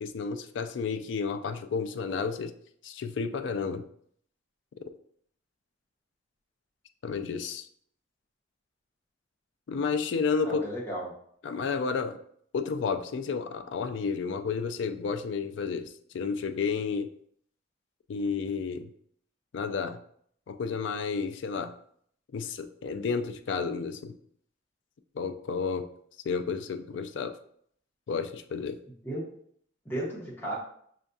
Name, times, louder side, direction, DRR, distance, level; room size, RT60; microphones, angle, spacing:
voice 1, 0.0-2.5 2.8-3.8 7.0-7.7 9.7-10.6 11.4-12.2 12.5-17.1 18.1-18.9 19.5-20.0 20.5-21.7 22.3-24.1 25.2-25.9 26.2-27.3 28.1-28.8, left 5 dB, 70° left, 9 dB, 0.3 m, -31 dB
voice 2, 10.4-11.1 29.0-29.3 29.8-30.5, right 1 dB, 10° left, -6 dB, 1.0 m, -34 dB
6.1 x 2.6 x 2.3 m, 0.64 s
head